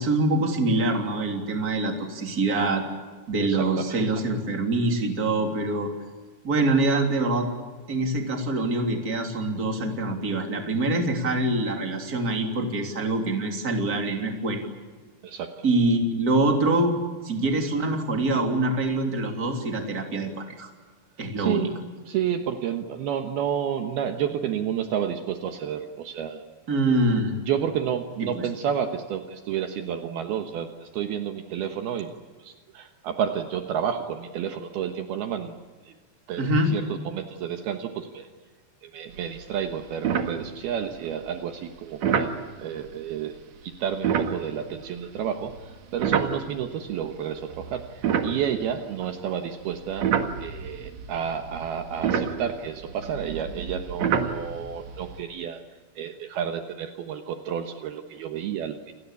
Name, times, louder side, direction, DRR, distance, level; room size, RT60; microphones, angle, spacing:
voice 1, 0.0-2.8 3.3-5.9 6.4-7.5 7.9-14.7 15.6-16.9 17.2-20.7 21.2-21.7 26.7-27.4 28.2-28.5 36.4-36.7, right 2 dB, 25° right, 4 dB, 3.2 m, -25 dB
voice 2, 3.4-4.0 15.2-15.6 21.4-21.7 22.1-26.4 27.5-32.1 32.4-35.5 35.8-36.0 36.3-38.3 38.8-50.1 50.4-55.6 56.0-58.9, right 8 dB, 70° right, 6 dB, 3.0 m, -30 dB
sound 1, 39.2-39.4 39.7-39.8 40.0-40.9 42.0-42.4 43.9-46.8 47.4-49.2 49.7-55.2, right 7 dB, 55° right, 2.3 m, -28 dB
29.0 x 20.5 x 8.4 m, 1.4 s
omnidirectional pair, 5.0 m